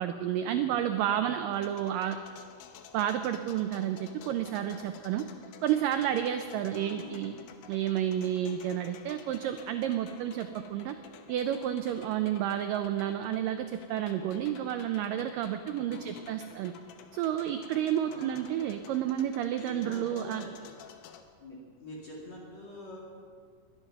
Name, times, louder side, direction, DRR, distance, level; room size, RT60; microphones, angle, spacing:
voice 1, 0.0-2.2 2.9-5.3 5.6-7.3 7.7-11.0 11.3-16.7 17.1-20.5, right 10 dB, 85° right, 8 dB, 1.9 m, -30 dB
sound 1, 1.5-21.2, left 8 dB, 85° left, 3.1 m, -52 dB
voice 2, 6.7-7.4 15.8-16.2 18.0-18.5 19.6-20.5 21.4-23.0, left 2 dB, 45° left, -4 dB, 3.3 m, -45 dB
21.5 x 11.0 x 5.9 m, 2.1 s
omnidirectional pair, 4.7 m